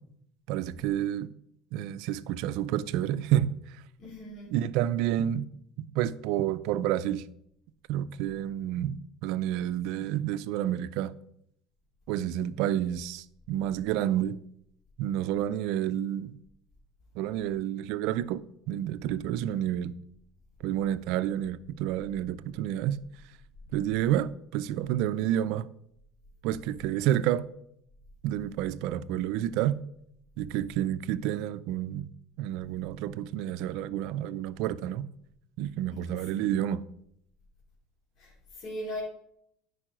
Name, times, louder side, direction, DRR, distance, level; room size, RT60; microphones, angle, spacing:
voice 1, 0.5-1.3 1.7-3.8 4.5-5.5 5.8-7.2 7.9-11.1 12.1-14.4 15.0-16.4 17.2-19.9 20.6-23.0 23.7-25.7 26.4-27.5 28.2-29.8 30.4-32.1 32.4-35.1 35.6-36.8, right 11 dB, 70° right, 0.5 m, -29 dB
voice 2, 4.0-4.6 35.9-36.5 38.2-39.0, equal, 50° left, 3.0 m, -40 dB
9.9 x 4.8 x 6.1 m
supercardioid pair, 105°, 0 cm